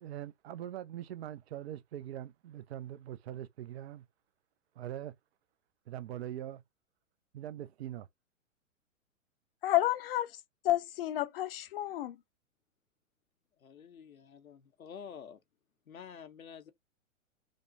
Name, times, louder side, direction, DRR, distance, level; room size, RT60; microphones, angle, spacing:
voice 1, 0.0-4.0 4.8-5.1 5.9-6.6 7.3-8.1, right 11 dB, 50° right, 0.5 m, -42 dB
voice 2, 9.6-10.3 10.6-12.2, left 14 dB, 45° left, 0.5 m, -30 dB
voice 3, 13.6-15.4 15.9-16.7, left 7 dB, 90° left, 0.7 m, -49 dB
5.1 x 2.1 x 2.5 m
figure-of-eight pair, 115°, 40 cm